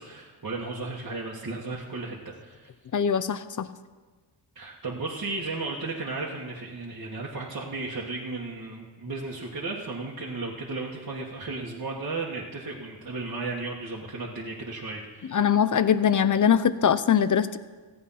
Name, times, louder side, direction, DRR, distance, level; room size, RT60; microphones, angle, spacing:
voice 1, 0.0-2.7 4.6-15.5, right 3 dB, 40° right, -4 dB, 1.8 m, -34 dB
voice 2, 2.9-3.7 15.3-17.6, left 8 dB, 40° left, 14 dB, 0.7 m, -22 dB
14.5 x 8.6 x 5.8 m, 1.4 s
cardioid pair, 60°, 47 cm